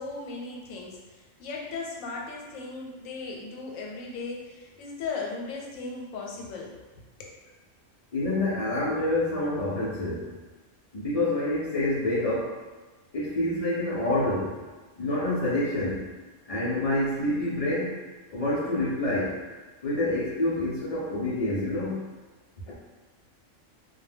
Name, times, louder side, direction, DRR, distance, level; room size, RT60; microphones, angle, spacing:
voice 1, 0.0-6.8 7.2-7.4, left 4 dB, 90° left, -1 dB, 1.0 m, -37 dB
voice 2, 8.1-10.3 10.9-12.5 13.1-14.6 15.0-16.0 16.5-18.0 18.3-19.4 19.8-22.1, left 1 dB, 65° left, -9 dB, 0.3 m, -27 dB
2.2 x 2.1 x 3.3 m, 1.3 s
omnidirectional pair, 1.4 m